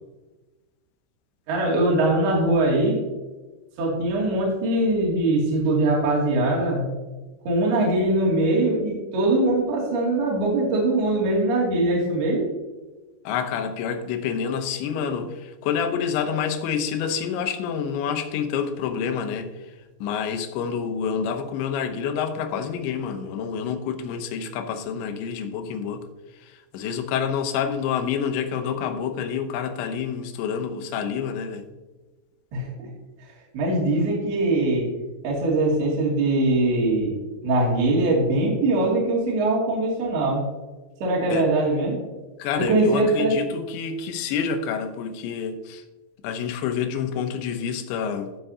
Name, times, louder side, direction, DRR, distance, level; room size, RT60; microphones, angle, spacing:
voice 1, 1.5-3.0 3.8-6.9 7.5-12.4 32.5-32.9 33.5-34.9 35.2-37.2 37.4-40.4 41.0-42.0 42.6-43.4, right 2 dB, 60° right, -3 dB, 4.3 m, -22 dB
voice 2, 13.2-19.8 20.0-26.0 26.3-31.7 41.3-41.5 42.4-45.8 46.2-48.3, left 7 dB, 80° left, 7 dB, 3.1 m, -28 dB
15.5 x 7.0 x 2.8 m, 1.2 s
omnidirectional pair, 5.4 m